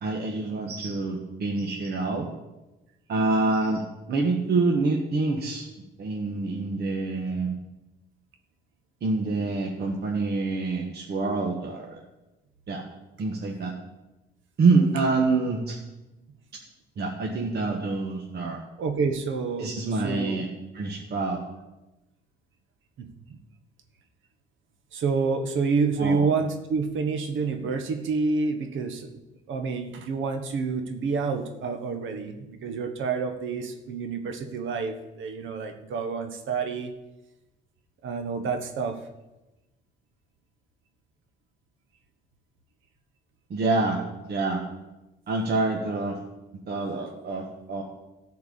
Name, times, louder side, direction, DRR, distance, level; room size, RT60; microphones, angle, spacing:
voice 1, 0.0-2.3 3.1-5.6 6.0-7.5 9.0-12.0 12.7-12.8 13.2-13.7 14.6-15.8 17.0-18.6 19.6-20.5 20.7-21.4 26.0-26.2 43.5-44.6 45.3-46.2 46.7-47.8, right 3 dB, 55° right, 1 dB, 1.5 m, -26 dB
voice 2, 18.8-20.4 23.0-23.4 24.9-29.1 29.5-36.9 38.0-39.0, right 4 dB, 75° right, 6 dB, 1.2 m, -28 dB
13.5 x 4.7 x 8.5 m, 1.0 s
cardioid pair, 90°, 20 cm